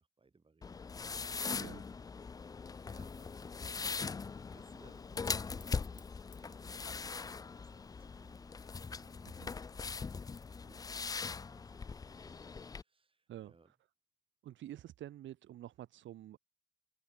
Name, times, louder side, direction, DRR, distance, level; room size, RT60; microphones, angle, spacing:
voice 1, 0.0-1.8 2.9-3.5 4.5-6.1 6.4-8.5 8.8-9.9 10.2-10.3 10.6-13.7, right 4 dB, 25° right, 4.5 m, -66 dB
sound 1, 0.6-12.8, left 5 dB, 20° left, 0.3 m, -41 dB
Fire, 2.6-10.0, left 6 dB, 40° left, 6.2 m, -69 dB
voice 2, 13.3-13.7 14.4-16.4, right 12 dB, 70° right, 1.2 m, -49 dB
cardioid pair, 90°, 20 cm